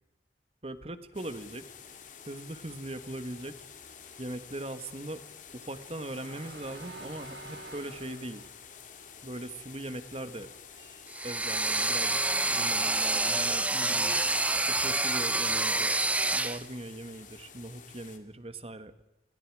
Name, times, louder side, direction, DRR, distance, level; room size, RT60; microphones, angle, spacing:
voice 1, 0.6-1.6 2.3-3.6 4.2-5.2 5.5-8.4 9.2-10.5 11.2-12.2 12.5-14.1 14.7-18.9, right 1 dB, 35° right, 11 dB, 1.6 m, -40 dB
sound 1, 1.1-18.2, left 7 dB, 45° left, 2.6 m, -50 dB
sound 2, 5.3-9.8 10.2-11.7, right 2 dB, 75° right, 5.2 m, -49 dB
sound 3, 11.1-16.6, right 2 dB, 10° right, 0.9 m, -27 dB
29.5 x 24.0 x 4.9 m, 0.90 s
head